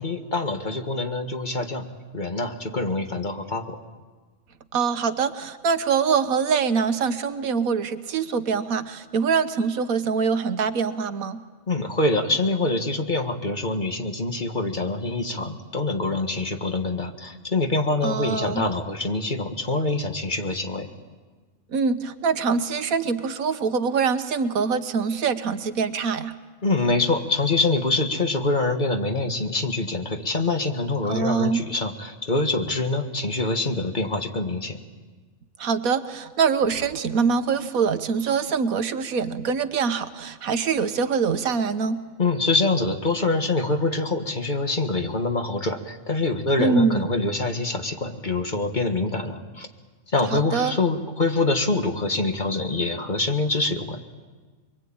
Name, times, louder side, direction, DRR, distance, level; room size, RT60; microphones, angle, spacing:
voice 1, 0.0-1.9 2.1-3.8 11.7-20.9 26.6-34.8 42.2-49.7 50.1-54.0, left 2 dB, 35° left, 5 dB, 1.8 m, -25 dB
voice 2, 4.7-11.4 18.0-18.7 21.7-26.3 31.1-31.6 35.6-42.0 46.6-47.1 50.3-50.7, right 5 dB, 80° right, 11 dB, 1.5 m, -24 dB
24.0 x 24.0 x 8.8 m, 1.4 s
omnidirectional pair, 1.5 m